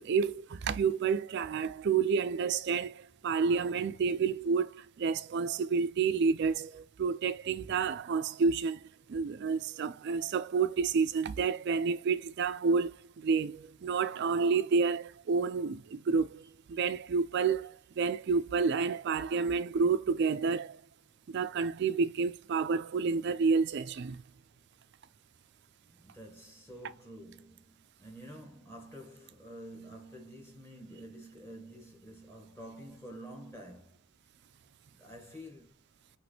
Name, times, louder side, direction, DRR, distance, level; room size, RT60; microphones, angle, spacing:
voice 1, 0.0-20.8 21.3-24.2, right 5 dB, 50° right, 0.3 m, -30 dB
voice 2, 25.8-34.0 34.9-35.8, equal, 10° left, 1.2 m, -49 dB
5.9 x 3.1 x 2.9 m
head